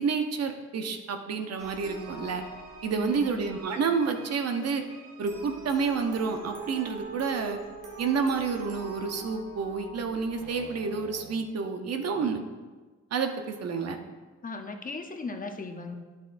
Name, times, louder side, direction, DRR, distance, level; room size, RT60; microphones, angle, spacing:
voice 1, 0.0-2.4 2.8-4.8 5.2-7.6 8.0-12.4 13.1-14.0, right 5 dB, 55° right, 5 dB, 0.8 m, -29 dB
sound 1, 1.6-11.3, right 3 dB, 80° right, 1.5 m, -44 dB
voice 2, 3.0-3.4 14.4-16.0, left 3 dB, 30° left, 5 dB, 0.8 m, -37 dB
9.7 x 7.4 x 2.6 m, 1.3 s
cardioid pair, 90°, 30 cm